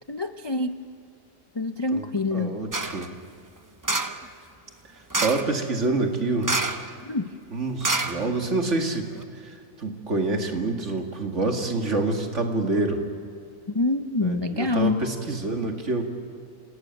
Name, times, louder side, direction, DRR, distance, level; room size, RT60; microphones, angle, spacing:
voice 1, 0.1-0.8 1.5-2.6 7.0-7.3 13.7-15.0, left 2 dB, 25° left, 7 dB, 0.5 m, -26 dB
voice 2, 2.3-3.1 5.2-6.5 7.5-13.0 14.2-16.0, right 2 dB, 60° right, 4 dB, 2.5 m, -27 dB
sound 1, 2.7-3.1 3.8-4.3 5.1-5.5 6.4-6.9 7.2-7.3 7.8-8.7 9.1-9.2, right 2 dB, 20° right, 0.7 m, -27 dB
27.0 x 18.0 x 9.2 m, 2.5 s
omnidirectional pair, 1.4 m